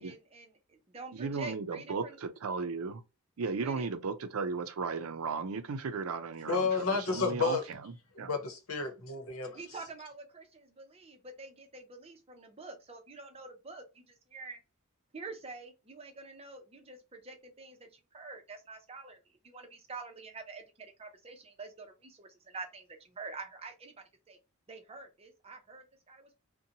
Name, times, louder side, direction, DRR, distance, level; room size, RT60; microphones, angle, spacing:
voice 1, 0.0-2.2 3.6-3.9 9.5-14.6 15.1-19.2 19.4-24.4 24.7-26.4, right 3 dB, 30° right, 0.6 m, -47 dB
voice 2, 1.1-3.0 3.4-7.6 8.2-8.3, right 4 dB, 80° right, 0.5 m, -35 dB
voice 3, 6.5-7.6 8.3-9.6, left 4 dB, 75° left, 0.9 m, -31 dB
2.6 x 2.2 x 2.7 m
head